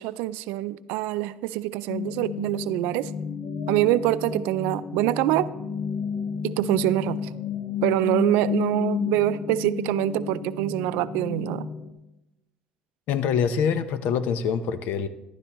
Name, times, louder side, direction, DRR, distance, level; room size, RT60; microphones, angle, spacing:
voice 1, 0.0-3.1 3.7-5.5 6.4-7.3 7.8-11.7, right 15 dB, 85° right, 15 dB, 0.4 m, -25 dB
sound 1, 1.9-11.9, left 6 dB, 45° left, 1.3 m, -31 dB
voice 2, 13.1-15.1, left 7 dB, 70° left, 12 dB, 0.7 m, -25 dB
13.5 x 11.5 x 3.0 m, 0.92 s
cardioid pair, 120°, 3 cm